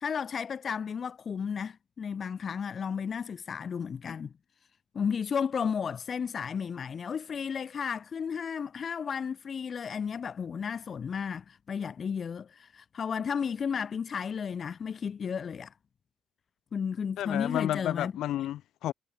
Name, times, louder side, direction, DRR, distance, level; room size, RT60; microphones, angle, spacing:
voice 1, 0.0-4.3 4.9-15.7 16.7-18.1, left 6 dB, 50° left, 0.6 m, -33 dB
voice 2, 17.2-18.9, left 13 dB, 80° left, 0.8 m, -31 dB
cardioid pair, 90°, 0 cm